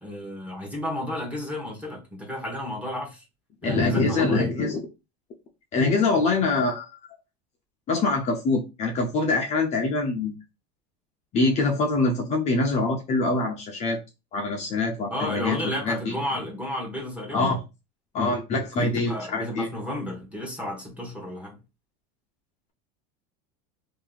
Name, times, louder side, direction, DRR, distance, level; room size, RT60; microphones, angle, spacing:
voice 1, 0.0-3.2 3.6-4.5 15.1-17.6 18.8-21.6, left 1 dB, 5° right, 1.2 m, -32 dB
voice 2, 3.6-4.8 5.7-6.9 7.9-10.4 11.3-14.0 14.3-16.1 17.3-17.6 18.1-19.7, left 3 dB, 35° left, 0.7 m, -24 dB
2.8 x 2.7 x 3.8 m
supercardioid pair, 145°, 21 cm